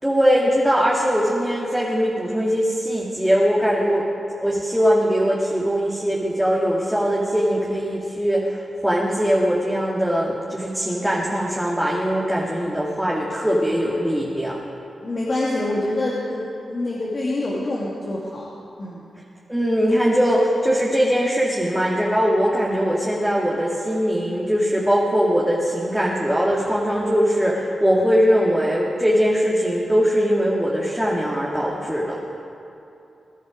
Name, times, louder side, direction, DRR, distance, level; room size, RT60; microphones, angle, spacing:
voice 1, 0.0-4.0 4.4-14.6 19.5-32.2, equal, 5° right, -4 dB, 2.1 m, -21 dB
voice 2, 15.0-18.5 18.8-19.0, left 2 dB, 50° left, -5 dB, 2.3 m, -26 dB
21.0 x 10.0 x 5.1 m, 2.7 s
cardioid pair, 55°, 0 cm